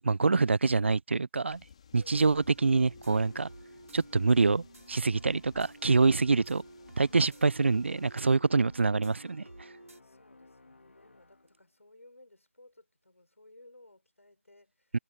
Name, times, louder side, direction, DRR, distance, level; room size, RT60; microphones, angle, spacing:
voice 1, 0.0-1.6 1.9-3.5 3.9-6.6 7.0-9.7 14.9-15.0, right 4 dB, 60° right, 0.4 m, -26 dB
sound 1, 1.5-8.2, left 7 dB, 25° left, 2.1 m, -58 dB
voice 2, 1.9-2.3 7.1-7.5 10.0-15.0, left 2 dB, 80° left, 5.5 m, -58 dB
sound 2, 2.1-10.0, right 2 dB, 85° right, 2.4 m, -52 dB
Musical instrument, 3.2-11.7, left 3 dB, 65° left, 2.8 m, -59 dB
figure-of-eight pair, 165°, 7 cm